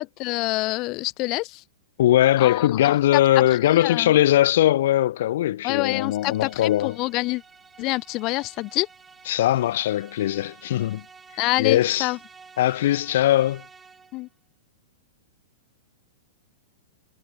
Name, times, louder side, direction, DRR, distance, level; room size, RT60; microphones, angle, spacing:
voice 1, 0.0-1.6 2.4-3.4 3.7-4.1 5.6-7.4 7.8-8.9 11.4-12.2 14.1-14.3, left 22 dB, 35° left, 0.8 m, -27 dB
voice 2, 2.0-7.0 9.3-11.0 11.6-12.1 12.6-13.6, left 13 dB, 65° left, 0.9 m, -20 dB
sound 1, 5.8-14.3, right 5 dB, 15° right, 3.4 m, -50 dB
hypercardioid pair, 140°, 0 cm